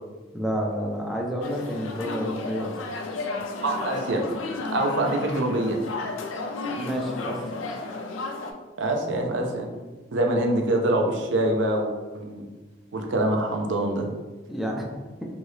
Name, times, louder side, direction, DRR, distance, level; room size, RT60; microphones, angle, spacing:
voice 1, 0.3-2.8 6.7-7.4 14.5-14.9, equal, ahead, -1 dB, 0.4 m, -29 dB
sound 1, 1.4-8.5, left 3 dB, 85° left, 0.4 m, -33 dB
voice 2, 3.6-4.2 4.7-5.8 8.8-9.7 10.1-12.4 12.9-14.1, right 1 dB, 70° right, 2 dB, 0.5 m, -25 dB
2.7 x 2.6 x 3.2 m, 1.2 s
head